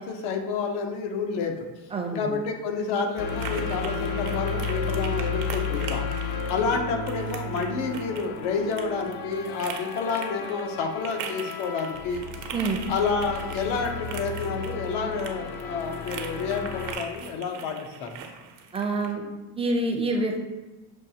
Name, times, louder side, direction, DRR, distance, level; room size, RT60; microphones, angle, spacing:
voice 1, 0.0-1.7 2.1-6.0 6.5-12.2 12.9-17.8 18.0-18.1, left 5 dB, 80° left, 4 dB, 0.8 m, -29 dB
voice 2, 1.9-2.3 12.5-12.8 18.7-19.2 19.6-20.4, right 2 dB, 15° right, 2 dB, 0.4 m, -26 dB
sound 1, 2.0-19.1, right 6 dB, 80° right, 0.7 m, -41 dB
sound 2, 3.2-17.0, left 4 dB, 55° left, 0.5 m, -33 dB
6.4 x 2.3 x 2.7 m, 1.1 s
cardioid pair, 125°, 43 cm